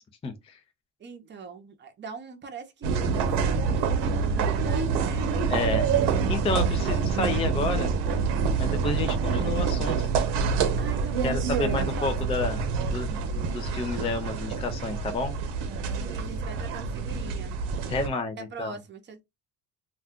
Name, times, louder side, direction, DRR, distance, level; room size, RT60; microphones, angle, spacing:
voice 1, 0.2-0.6 5.5-5.9 6.3-7.9 8.6-10.1 11.2-12.6 12.9-15.4 17.9-18.7, left 3 dB, 15° left, 0.3 m, -30 dB
voice 2, 1.0-5.3 10.8-12.4 15.9-17.6 18.4-19.2, right 5 dB, 25° right, 0.7 m, -42 dB
sound 1, 2.8-18.1, right 5 dB, 90° right, 0.8 m, -26 dB
2.4 x 2.3 x 3.5 m
cardioid pair, 130°, 40 cm